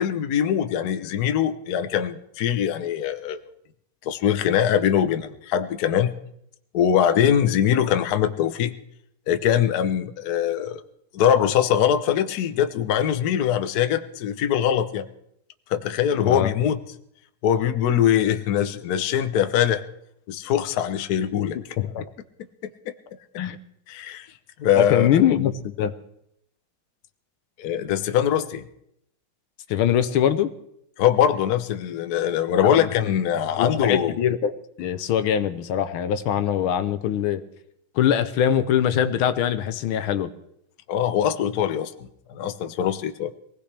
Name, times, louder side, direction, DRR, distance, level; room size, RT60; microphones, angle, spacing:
voice 1, 0.0-3.4 4.1-6.1 6.7-8.7 9.3-10.8 11.1-15.1 15.7-16.8 17.4-19.8 20.3-21.6 22.9-23.0 23.9-24.3 24.6-25.2 27.6-28.6 31.0-34.1 40.9-43.3, left 9 dB, 60° left, 9 dB, 1.1 m, -22 dB
voice 2, 21.6-22.0 23.4-23.6 24.8-25.9 29.7-30.5 32.7-32.9 33.6-34.5 34.8-37.4 38.0-40.3, left 9 dB, 85° left, 11 dB, 1.7 m, -22 dB
22.5 x 17.0 x 3.4 m, 0.74 s
omnidirectional pair, 2.2 m